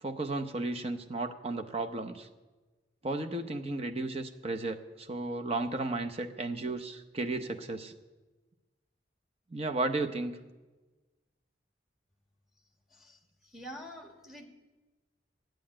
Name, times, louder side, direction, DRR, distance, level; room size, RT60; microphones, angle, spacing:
voice 1, 0.0-2.3 3.0-7.9 9.5-10.4, right 2 dB, 35° right, 6 dB, 0.8 m, -34 dB
voice 2, 12.9-14.5, equal, ahead, 3 dB, 1.6 m, -47 dB
11.0 x 9.1 x 8.7 m, 1.2 s
head